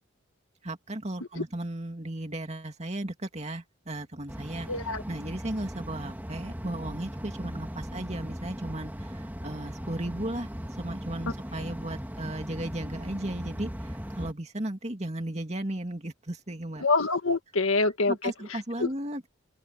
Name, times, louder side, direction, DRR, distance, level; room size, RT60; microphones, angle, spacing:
voice 1, 0.6-4.7 5.1-10.5 10.8-16.9 18.1-19.3, right 1 dB, 30° right, 2.5 m, -35 dB
sound 1, 4.3-14.3, equal, 10° right, 2.5 m, -38 dB
voice 2, 4.7-5.0 16.8-18.2 18.5-18.9, left 3 dB, 85° left, 1.9 m, -26 dB
open air
head